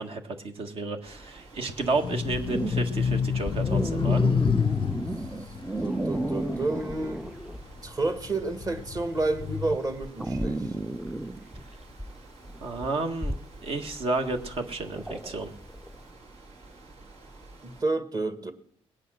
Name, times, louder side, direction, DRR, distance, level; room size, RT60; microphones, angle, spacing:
voice 1, 0.0-4.2 12.6-13.3 13.6-15.5, right 3 dB, 60° right, 1.7 m, -31 dB
sound 1, 1.0-17.8, right 2 dB, 75° right, 3.2 m, -50 dB
sound 2, 1.8-7.4 7.9-9.8, left 7 dB, 50° left, 0.5 m, -28 dB
sound 3, 2.2-7.8 8.1-15.9, right 1 dB, 5° right, 0.5 m, -33 dB
voice 2, 5.8-7.2 7.8-10.8 17.6-18.5, right 2 dB, 35° right, 1.7 m, -30 dB
20.0 x 8.3 x 6.4 m
cardioid pair, 80°, 11 cm